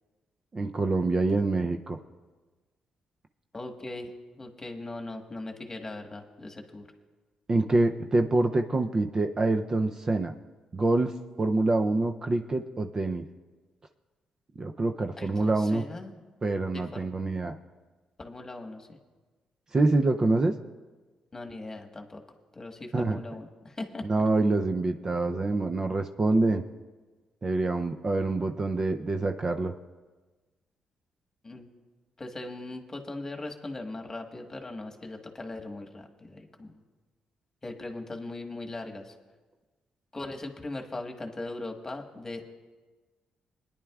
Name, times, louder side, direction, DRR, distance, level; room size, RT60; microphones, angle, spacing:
voice 1, 0.5-2.0 7.5-10.3 10.7-13.2 14.6-15.8 16.4-17.6 19.7-20.5 22.9-23.2 24.0-26.6 27.4-29.7, right 2 dB, 30° right, 6 dB, 0.5 m, -26 dB
voice 2, 3.5-6.9 15.2-16.2 16.7-17.1 18.2-19.0 21.3-22.2 22.5-24.0 31.4-31.7 32.2-36.8 37.6-39.1 40.1-42.4, left 2 dB, 25° left, 3 dB, 1.4 m, -39 dB
21.5 x 10.0 x 2.4 m, 1.3 s
cardioid pair, 85°, 2 cm